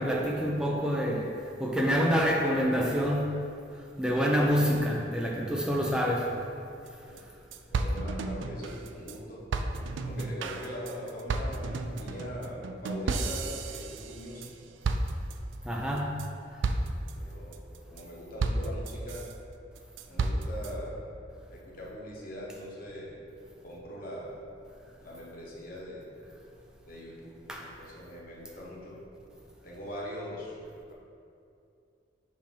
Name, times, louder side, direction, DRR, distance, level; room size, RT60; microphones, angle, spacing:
voice 1, 0.0-3.4 4.0-6.4 15.6-16.3 27.5-27.7, equal, 5° right, -1 dB, 0.6 m, -27 dB
sound 1, 6.9-7.0 7.2-7.3 7.5-9.2 9.5-14.5 14.8-15.5 16.0-16.3 16.6-17.1 17.5-18.0 18.4-19.3 19.8-20.7, right 3 dB, 80° right, 0.4 m, -32 dB
voice 2, 7.7-9.4 10.0-14.5 17.1-17.6 17.9-19.3 20.1-21.0 21.5-23.2 23.6-24.4 25.0-26.1 26.8-27.3 27.6-29.0 29.6-30.6, equal, 50° left, -4 dB, 1.2 m, -41 dB
7.5 x 2.9 x 5.5 m, 2.5 s
head